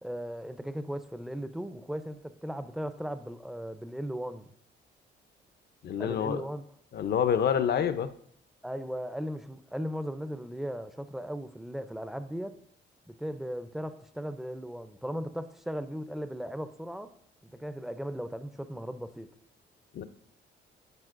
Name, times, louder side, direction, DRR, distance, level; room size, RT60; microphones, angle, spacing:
voice 1, 0.0-4.5 6.0-6.6 8.6-12.6 13.1-17.1 17.4-19.3, equal, ahead, 0.5 m, -37 dB
voice 2, 5.8-6.4 6.9-8.1 19.9-20.0, left 8 dB, 55° left, 0.6 m, -27 dB
11.0 x 7.6 x 2.5 m
cardioid pair, 90°, 20 cm